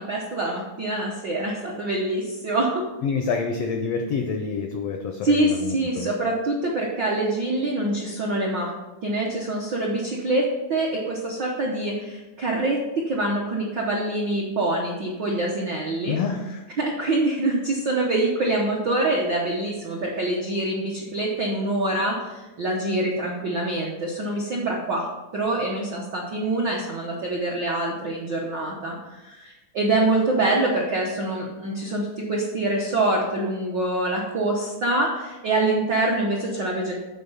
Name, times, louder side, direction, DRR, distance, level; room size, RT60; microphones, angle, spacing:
voice 1, 0.0-2.8 5.2-8.7 9.0-16.2 16.8-25.1 25.3-36.9, right 2 dB, 70° right, -2 dB, 1.0 m, -25 dB
voice 2, 3.0-6.1 16.1-16.6, left 5 dB, 85° left, 5 dB, 1.4 m, -27 dB
8.5 x 4.3 x 5.6 m, 1.1 s
omnidirectional pair, 3.5 m